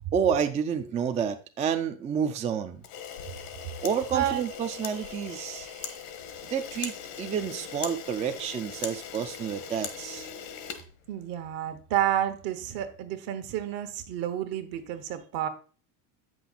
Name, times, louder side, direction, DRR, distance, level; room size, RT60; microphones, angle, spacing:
voice 1, 0.1-2.8 3.8-6.0 6.4-10.3, right 7 dB, 20° right, 7 dB, 0.3 m, -29 dB
Camera, 2.8-11.5, left 8 dB, 80° left, 1.3 m, -40 dB
voice 2, 4.1-4.4 11.1-15.5, right 11 dB, 65° right, 8 dB, 1.2 m, -30 dB
8.1 x 6.1 x 3.9 m, 0.38 s
cardioid pair, 135°, 40 cm